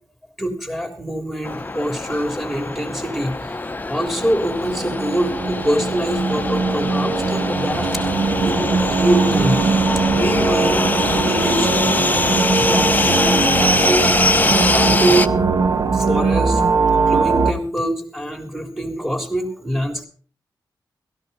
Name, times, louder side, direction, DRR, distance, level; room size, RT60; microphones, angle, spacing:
voice 1, 0.4-9.6 10.0-12.1 12.7-14.2 14.7-15.5 15.9-20.0, right 1 dB, ahead, 6 dB, 3.4 m, -24 dB
sound 1, 1.4-15.3, left 2 dB, 25° left, 0.9 m, -22 dB
sound 2, 4.2-17.5, right 4 dB, 60° right, 1.2 m, -21 dB
16.5 x 14.0 x 4.2 m, 0.38 s
cardioid pair, 80°, 8 cm